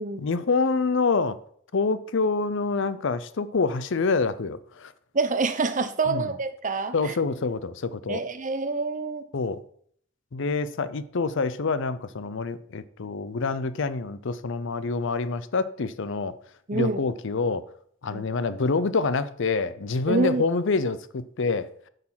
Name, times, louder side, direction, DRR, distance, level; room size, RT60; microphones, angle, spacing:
voice 1, 0.2-1.4 1.7-4.9 6.1-6.3 6.9-8.2 9.3-9.6 10.3-16.3 16.7-17.6 18.0-21.7, left 4 dB, 65° left, 0.6 m, -26 dB
voice 2, 5.1-7.2 8.1-9.2 16.7-17.0 18.1-18.2 20.1-20.5, right 3 dB, 40° right, 0.8 m, -26 dB
8.6 x 6.6 x 5.6 m
head